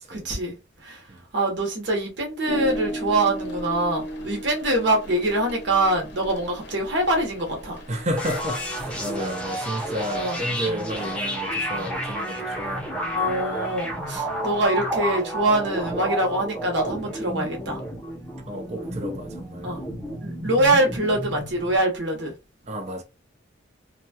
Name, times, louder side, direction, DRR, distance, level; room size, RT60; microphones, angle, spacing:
voice 1, 0.1-0.5 0.8-1.0 1.3-7.8 10.1-10.4 13.2-17.8 19.6-19.8 20.2-22.3, right 1 dB, 70° right, 1.0 m, -24 dB
sound 1, 2.4-8.8, right 1 dB, 60° left, 0.8 m, -35 dB
voice 2, 7.9-13.3 18.5-19.9 22.6-23.0, equal, 35° right, 0.6 m, -32 dB
sound 2, 8.2-21.8, equal, 5° left, 0.6 m, -31 dB
2.8 x 2.2 x 2.8 m
head